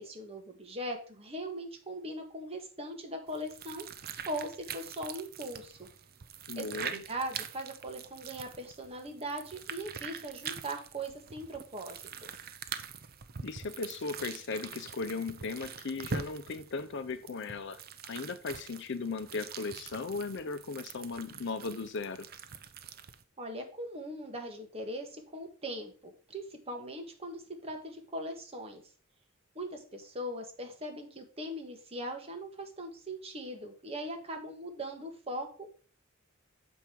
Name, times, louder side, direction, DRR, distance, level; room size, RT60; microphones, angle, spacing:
voice 1, 0.0-3.9 4.2-5.9 6.6-6.7 6.9-12.3 23.4-28.8 29.5-35.7, right 1 dB, 30° right, 3 dB, 1.6 m, -40 dB
sound 1, 3.3-23.2, right 6 dB, 50° right, 0.6 m, -44 dB
voice 2, 6.5-7.0 13.4-17.8 18.1-22.3, left 4 dB, 60° left, 12 dB, 0.6 m, -37 dB
7.2 x 5.2 x 4.5 m, 0.39 s
head